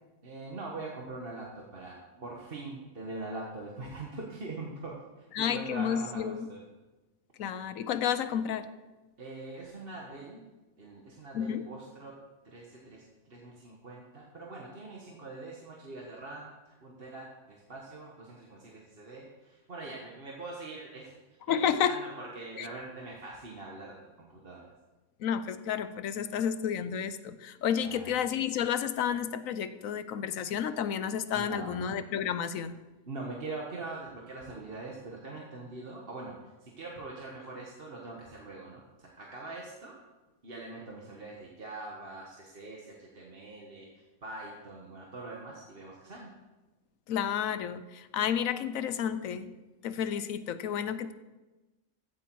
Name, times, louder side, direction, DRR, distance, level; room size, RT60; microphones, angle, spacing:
voice 1, 0.2-6.6 9.2-10.4 10.8-12.1 12.4-21.2 21.5-24.7 27.8-28.1 31.3-31.8 33.1-36.3 36.6-39.9 40.4-43.9 44.2-46.3, right 2 dB, 45° right, -2 dB, 1.6 m, -43 dB
voice 2, 5.3-6.5 7.4-8.7 11.3-11.6 21.5-22.0 22.6-22.7 25.2-32.8 47.1-49.5 49.8-51.1, left 8 dB, 75° left, 12 dB, 1.1 m, -31 dB
15.0 x 8.2 x 4.6 m, 1.1 s
omnidirectional pair, 1.4 m